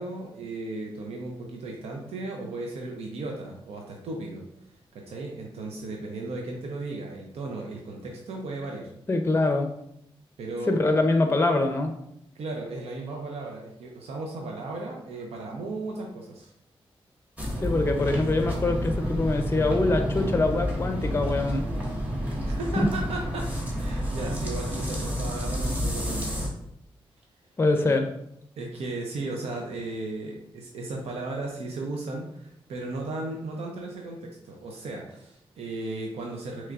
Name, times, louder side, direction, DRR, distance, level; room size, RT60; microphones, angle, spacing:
voice 1, 0.0-4.4 4.9-8.9 10.4-10.8 12.3-16.5 22.5-23.5 23.7-26.5 28.6-36.7, right 2 dB, 90° right, 0 dB, 0.5 m, -35 dB
voice 2, 9.1-9.7 10.7-11.9 17.6-21.7 22.8-22.9 27.6-28.1, left 2 dB, 20° left, 5 dB, 0.5 m, -24 dB
sound 1, 17.4-26.5, equal, 15° right, 1.3 m, -30 dB
4.4 x 3.0 x 2.4 m, 0.74 s
cardioid pair, 70°, 10 cm